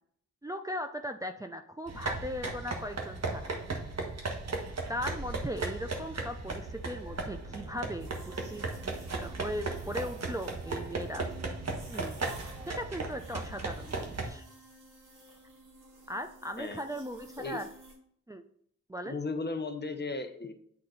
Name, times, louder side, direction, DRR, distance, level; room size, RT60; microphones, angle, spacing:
voice 1, 0.4-3.4 4.9-11.3 11.9-12.2 12.6-14.4 16.1-17.7 18.3-18.4 18.9-19.2, equal, 10° right, 5 dB, 0.5 m, -38 dB
sound 1, 1.9-14.3, right 3 dB, 55° right, 1.4 m, -36 dB
sound 2, 8.0-18.0, right 2 dB, 80° right, 2.4 m, -53 dB
voice 2, 19.0-20.5, left 3 dB, 35° left, 7 dB, 0.9 m, -35 dB
8.7 x 3.9 x 3.9 m, 0.66 s
cardioid pair, 70°, 30 cm